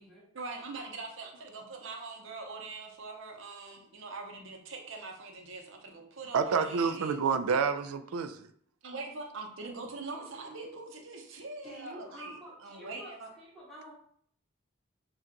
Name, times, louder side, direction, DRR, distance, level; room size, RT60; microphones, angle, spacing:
voice 1, 0.3-7.2 8.8-13.3, right 3 dB, 60° right, 2 dB, 0.8 m, -43 dB
voice 2, 6.3-8.5, right 5 dB, 85° right, 10 dB, 0.4 m, -28 dB
voice 3, 11.6-13.9, right 1 dB, ahead, -8 dB, 1.3 m, -48 dB
7.2 x 2.5 x 2.9 m, 0.63 s
head